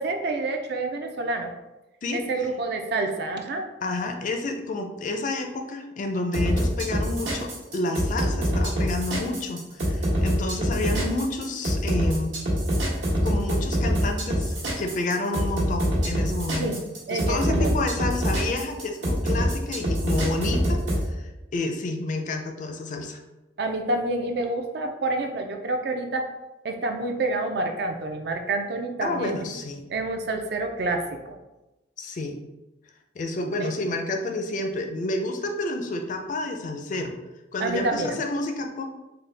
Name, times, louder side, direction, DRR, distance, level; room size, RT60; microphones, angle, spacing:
voice 1, 0.0-1.5 2.1-3.7 16.6-16.7 17.1-17.8 23.6-26.3 26.6-29.5 29.9-31.4 33.6-33.7 37.6-38.1, right 2 dB, 60° right, 4 dB, 0.4 m, -28 dB
voice 2, 3.8-12.4 13.2-16.7 17.1-20.8 21.1-23.2 29.0-29.8 32.0-32.4 33.2-37.1 37.5-38.8, left 2 dB, 45° left, 4 dB, 0.4 m, -29 dB
sound 1, 6.3-21.0, equal, 80° right, 1.2 m, -24 dB
3.8 x 2.1 x 3.3 m, 1.0 s
head